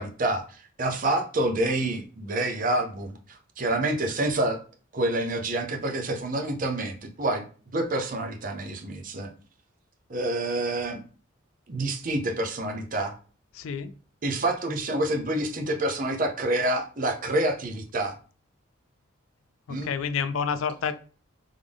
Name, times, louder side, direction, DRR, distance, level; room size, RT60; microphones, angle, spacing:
voice 1, 0.0-4.6 4.9-7.4 7.7-9.3 10.1-11.0 11.7-13.1 14.2-18.1 19.7-19.9, right 1 dB, 40° right, 3 dB, 0.6 m, -27 dB
voice 2, 13.5-13.9 19.7-20.9, left 6 dB, 75° left, 13 dB, 0.4 m, -29 dB
3.6 x 3.5 x 3.5 m, 0.40 s
head